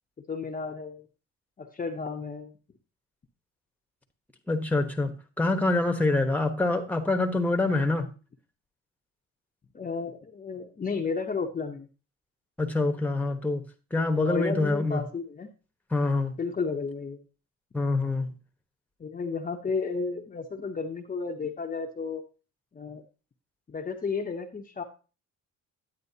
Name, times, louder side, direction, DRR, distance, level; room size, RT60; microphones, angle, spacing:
voice 1, 0.3-1.1 1.6-2.5 9.7-11.9 13.9-15.5 16.4-17.2 19.0-22.2 22.7-23.0 23.7-24.8, left 4 dB, 25° left, 2 dB, 0.8 m, -33 dB
voice 2, 4.5-8.1 12.6-13.6 13.9-15.0 15.9-16.3 17.7-18.3, left 2 dB, 5° left, 6 dB, 1.1 m, -25 dB
9.6 x 8.5 x 2.8 m, 0.33 s
cardioid pair, 90°, 30 cm